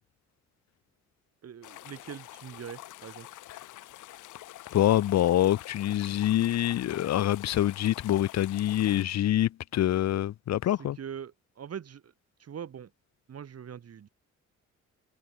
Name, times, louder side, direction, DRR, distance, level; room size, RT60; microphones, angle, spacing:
voice 1, 1.4-3.3 10.7-12.1 12.4-12.9 13.3-14.1, right 8 dB, 55° right, 5.6 m, -42 dB
sound 1, 1.6-9.0, left 15 dB, 90° left, 4.2 m, -47 dB
voice 2, 4.7-11.0, left 12 dB, 60° left, 0.8 m, -25 dB
cardioid pair, 90°, 30 cm